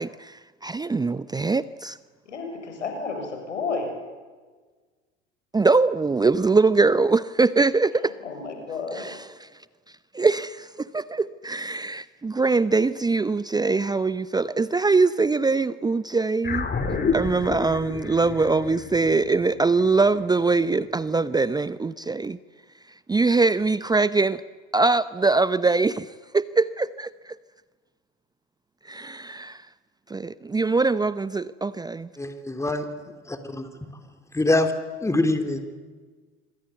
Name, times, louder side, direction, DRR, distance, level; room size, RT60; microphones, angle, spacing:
voice 1, 0.0-2.0 5.5-8.1 9.0-9.2 10.1-16.7 17.1-22.4 23.1-24.4 24.7-26.1 26.3-27.4 28.9-29.6 30.1-32.1, right 3 dB, 10° right, 0.7 m, -22 dB
voice 2, 2.2-4.0 8.2-9.1, left 4 dB, 80° left, 6.6 m, -31 dB
sound 1, 16.4-21.1, left 4 dB, 25° left, 3.7 m, -30 dB
voice 3, 32.2-32.9 33.3-33.7 34.3-34.7 35.0-35.8, left 2 dB, 10° left, 3.4 m, -24 dB
26.5 x 25.0 x 8.3 m
hypercardioid pair, 75°, 35 cm